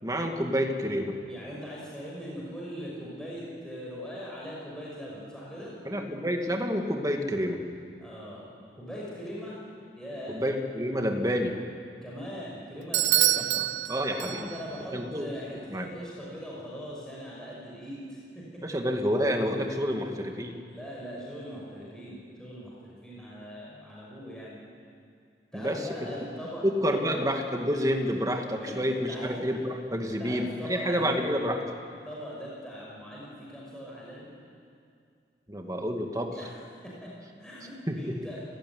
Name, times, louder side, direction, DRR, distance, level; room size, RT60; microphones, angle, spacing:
voice 1, 0.0-1.2 5.9-7.6 10.3-11.6 13.4-14.4 14.9-15.3 15.7-15.9 18.6-20.6 25.5-26.3 26.6-31.6 35.5-36.4 37.9-38.2, equal, 20° right, 3 dB, 2.2 m, -29 dB
voice 2, 1.3-5.7 8.0-8.5 8.8-9.5 10.0-10.4 12.0-13.5 14.2-18.6 20.7-24.6 25.5-26.7 26.9-27.2 28.6-29.6 30.2-31.5 32.0-34.3 36.3-36.6 36.8-37.1 37.4-38.4, equal, 5° left, -5 dB, 5.7 m, -41 dB
Bell / Doorbell, 12.9-14.8, right 15 dB, 85° right, 0.6 m, -26 dB
29.0 x 16.5 x 9.7 m, 2.3 s
head